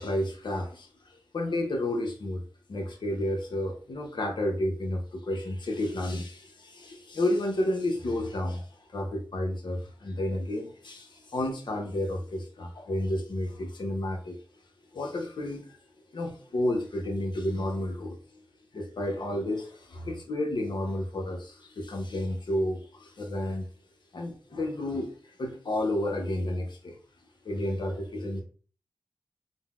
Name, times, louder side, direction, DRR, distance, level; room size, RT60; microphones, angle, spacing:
voice 1, 0.0-2.4 2.7-14.4 14.9-15.8 16.1-18.4 18.7-23.7 24.1-27.0 27.4-28.4, left 1 dB, 75° left, 0.7 m, -31 dB
3.8 x 2.0 x 2.3 m
cardioid pair, 40°, 8 cm